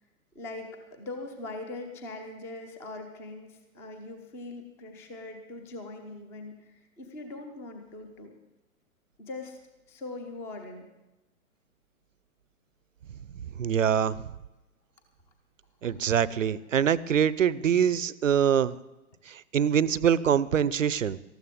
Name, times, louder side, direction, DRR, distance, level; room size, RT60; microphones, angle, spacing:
voice 1, 0.3-8.3 9.2-9.6 9.9-10.9 15.8-16.0, left 2 dB, 5° left, 6 dB, 0.5 m, -41 dB
voice 2, 13.6-14.1 15.8-18.8 19.5-21.2, right 8 dB, 60° right, 20 dB, 0.6 m, -24 dB
18.5 x 14.0 x 3.7 m, 1.0 s
figure-of-eight pair, 120°, 43 cm